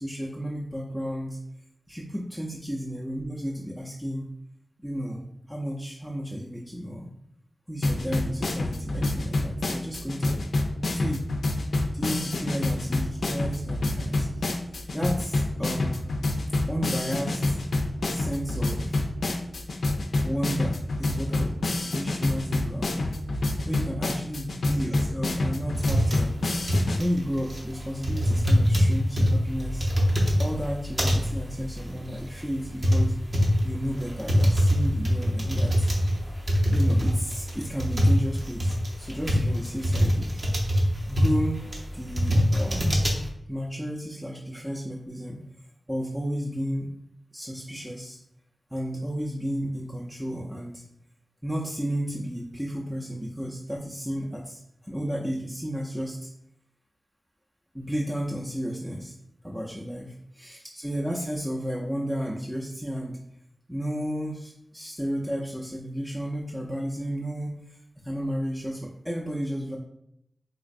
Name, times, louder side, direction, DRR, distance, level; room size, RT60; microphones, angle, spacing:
voice 1, 0.0-1.4 1.9-4.3 4.8-7.1 7.7-10.4 10.9-11.3 11.9-14.4 14.9-16.1 16.7-17.6 18.1-19.0 20.2-21.6 21.8-26.4 27.0-29.9 30.4-33.1 33.6-35.9 36.7-40.4 41.1-43.1 43.5-45.4 45.9-46.9 47.3-48.2 48.7-50.8 51.4-56.3 57.7-59.1 59.4-63.2 63.7-69.8, equal, 5° right, -3 dB, 0.5 m, -33 dB
sound 1, 7.8-27.0, left 2 dB, 75° left, 0.4 m, -28 dB
sound 2, 25.7-43.3, equal, 45° right, 0.7 m, -24 dB
3.9 x 2.4 x 2.5 m, 0.78 s
cardioid pair, 55°, 0 cm